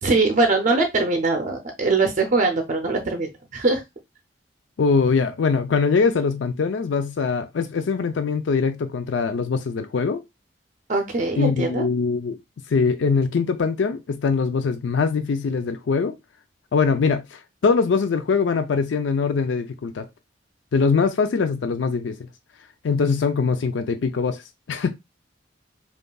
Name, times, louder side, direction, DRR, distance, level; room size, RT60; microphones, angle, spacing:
voice 1, 0.0-3.8 10.9-11.9, right 3 dB, 45° right, 0.5 m, -22 dB
voice 2, 4.8-10.2 11.4-12.4 12.7-16.2 16.7-20.1 20.7-22.2 22.8-24.9, left 5 dB, 85° left, 0.4 m, -22 dB
5.2 x 2.4 x 2.3 m
head